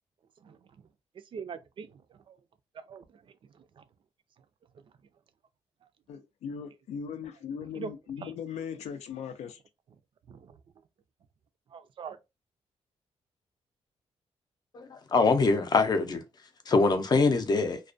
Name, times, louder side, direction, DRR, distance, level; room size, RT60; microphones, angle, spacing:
voice 1, 1.3-1.9 2.3-2.4 2.9-3.1 3.8-3.9 7.8-7.9 8.2-8.3 10.3-10.5 11.7-12.2, right 6 dB, 50° right, 0.4 m, -41 dB
voice 2, 6.1-9.6, left 7 dB, 90° left, 0.5 m, -39 dB
voice 3, 14.7-16.2 16.7-17.8, left 3 dB, 40° left, 0.5 m, -24 dB
2.3 x 2.1 x 2.5 m
cardioid pair, 125°, 11 cm